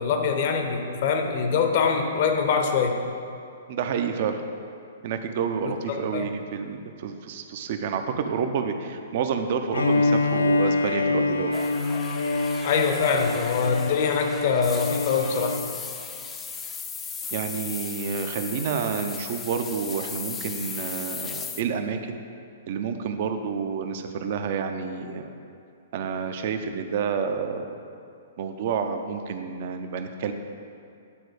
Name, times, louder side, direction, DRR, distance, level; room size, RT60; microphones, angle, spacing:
voice 1, 0.0-3.0 5.9-6.3 12.6-15.6, left 5 dB, 50° left, 5 dB, 0.8 m, -24 dB
voice 2, 3.7-4.4 5.0-11.5 17.3-22.2 22.7-25.3 25.9-27.8 28.4-30.3, right 6 dB, 50° right, 7 dB, 0.5 m, -29 dB
Bowed string instrument, 9.7-15.8, left 3 dB, 80° left, 0.4 m, -26 dB
sound 1, 11.5-21.6, left 6 dB, 15° left, 0.5 m, -37 dB
8.8 x 4.0 x 4.8 m, 2.5 s
figure-of-eight pair, 115°, 0 cm